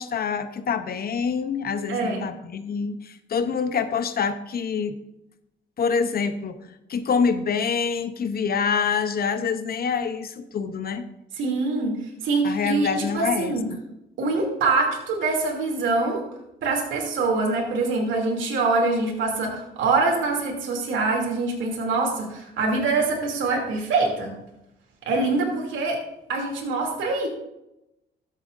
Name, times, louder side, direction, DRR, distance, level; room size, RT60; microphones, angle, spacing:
voice 1, 0.0-5.0 5.8-11.1 12.4-13.8, left 6 dB, 50° left, 11 dB, 0.7 m, -26 dB
voice 2, 1.9-2.2 11.4-12.0 12.2-13.6 14.2-16.2 16.6-24.3 25.1-26.0 26.3-27.3, right 3 dB, 75° right, -1 dB, 2.7 m, -24 dB
13.5 x 7.6 x 2.6 m, 0.87 s
cardioid pair, 90°, 20 cm